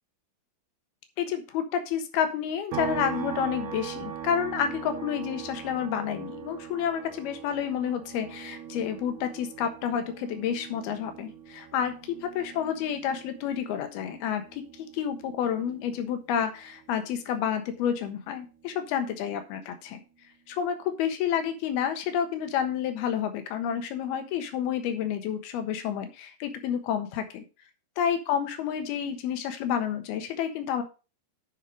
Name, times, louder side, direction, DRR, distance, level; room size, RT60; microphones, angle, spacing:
voice 1, 1.2-14.6 14.9-20.0 20.5-27.4 28.0-30.8, left 8 dB, 80° left, 7 dB, 3.2 m, -30 dB
sound 1, 2.7-16.3 16.6-18.8, right 8 dB, 55° right, 2.7 m, -41 dB
10.0 x 5.6 x 4.9 m, 0.32 s
omnidirectional pair, 4.5 m